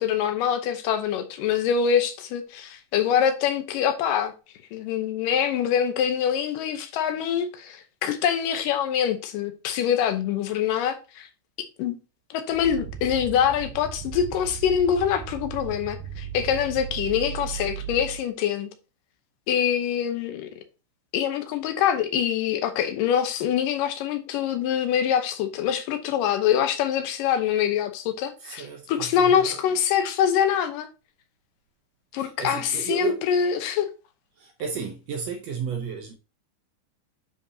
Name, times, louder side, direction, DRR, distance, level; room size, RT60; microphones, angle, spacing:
voice 1, 0.0-4.3 4.7-11.3 11.8-12.0 12.3-18.7 19.5-20.5 21.1-30.9 32.1-33.9, left 8 dB, 80° left, 2.6 m, -24 dB
sound 1, 12.5-18.3, right 10 dB, 90° right, 2.4 m, -36 dB
voice 2, 28.4-29.6 32.2-33.2 34.4-36.2, right 6 dB, 70° right, 1.7 m, -33 dB
9.7 x 5.2 x 2.8 m
omnidirectional pair, 3.8 m